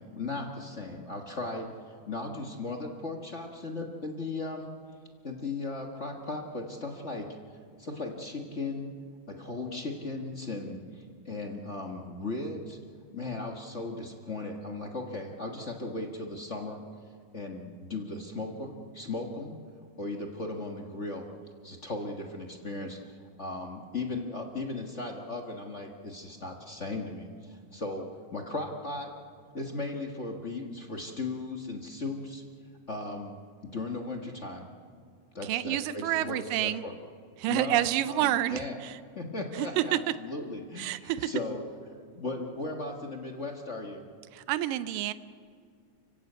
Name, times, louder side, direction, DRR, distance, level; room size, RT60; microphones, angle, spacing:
voice 1, 0.0-4.7 5.2-7.3 7.8-9.0 9.3-12.8 13.1-16.8 17.3-19.6 20.0-21.3 21.6-29.1 29.5-32.4 32.9-33.3 33.6-34.7 35.3-36.9 37.5-38.8 39.1-41.7 42.1-44.0, left 2 dB, 35° left, 2 dB, 1.1 m, -37 dB
voice 2, 35.4-36.9 37.4-39.0 39.6-40.0 40.8-41.3 44.3-45.1, right 13 dB, 90° right, 14 dB, 2.4 m, -29 dB
30.0 x 16.0 x 8.2 m, 2.2 s
omnidirectional pair, 3.8 m